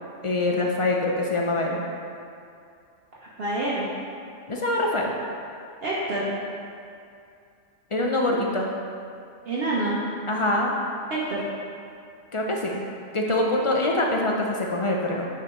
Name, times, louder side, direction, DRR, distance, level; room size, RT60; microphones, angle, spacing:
voice 1, 0.2-1.8 4.5-5.1 7.9-8.7 10.3-10.7 12.3-12.9 13.1-15.3, left 2 dB, 55° left, -1 dB, 0.3 m, -24 dB
voice 2, 3.2-3.9 5.8-6.3 9.5-10.0 11.1-11.5, right 2 dB, 55° right, -7 dB, 1.0 m, -27 dB
9.5 x 4.8 x 3.0 m, 2.5 s
omnidirectional pair, 1.3 m